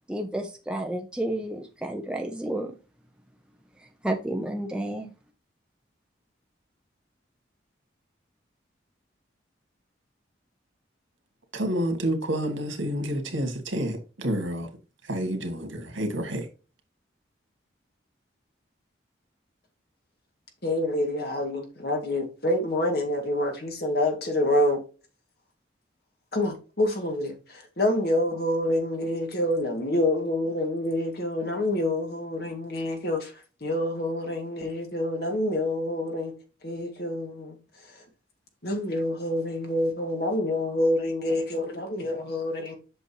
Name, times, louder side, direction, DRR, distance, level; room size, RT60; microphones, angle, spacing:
voice 1, 0.1-2.7 3.8-5.1, right 1 dB, 5° right, 0.6 m, -31 dB
voice 2, 11.5-14.7 15.0-16.5, right 1 dB, 90° right, 2.1 m, -29 dB
voice 3, 20.6-24.8 26.3-36.3 36.6-38.0 38.6-42.8, left 1 dB, 55° left, 2.0 m, -27 dB
8.0 x 6.2 x 2.9 m
head